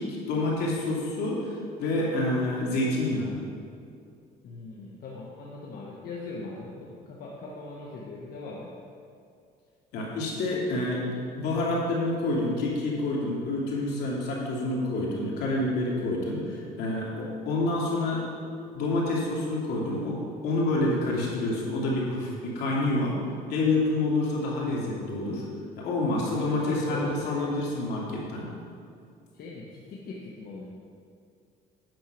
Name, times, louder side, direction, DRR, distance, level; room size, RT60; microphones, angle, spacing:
voice 1, 0.0-3.4 9.9-11.1 11.4-18.2 18.7-23.2 23.5-25.5 25.8-28.5, left 2 dB, 75° left, -4 dB, 2.7 m, -28 dB
voice 2, 4.4-8.7 26.2-27.5 29.3-30.6, left 3 dB, 60° left, -4 dB, 1.4 m, -40 dB
9.4 x 6.5 x 6.0 m, 2.4 s
cardioid pair, 110°, 17 cm